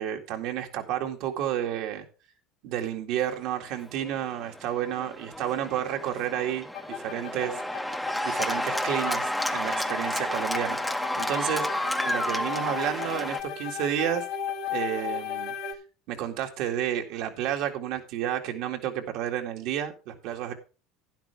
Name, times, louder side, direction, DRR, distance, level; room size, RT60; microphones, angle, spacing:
voice 1, 0.0-2.1 2.6-7.6 8.2-11.7 12.0-14.2 14.7-15.5 16.1-20.5, right 10 dB, 65° right, 4 dB, 2.2 m, -31 dB
Cheering / Applause, 3.7-13.4, left 1 dB, 5° left, 0.9 m, -31 dB
sound 1, 6.7-15.7, left 8 dB, 65° left, 1.6 m, -36 dB
11.5 x 10.5 x 3.5 m, 0.33 s
supercardioid pair, 125°, 0 cm